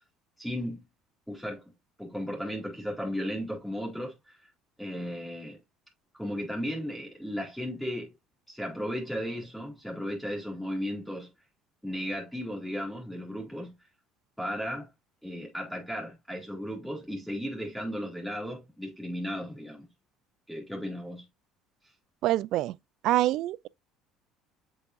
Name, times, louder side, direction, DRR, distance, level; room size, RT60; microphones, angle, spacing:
voice 1, 0.4-0.8 1.3-1.6 2.0-4.4 4.8-5.6 6.1-8.1 8.5-11.3 11.8-13.7 14.4-14.9 15.2-19.9 20.5-21.2, equal, ahead, 3.4 m, -35 dB
voice 2, 22.2-22.7 23.0-23.7, right 15 dB, 60° right, 0.3 m, -25 dB
7.6 x 4.9 x 2.6 m
hypercardioid pair, 65°, 0 cm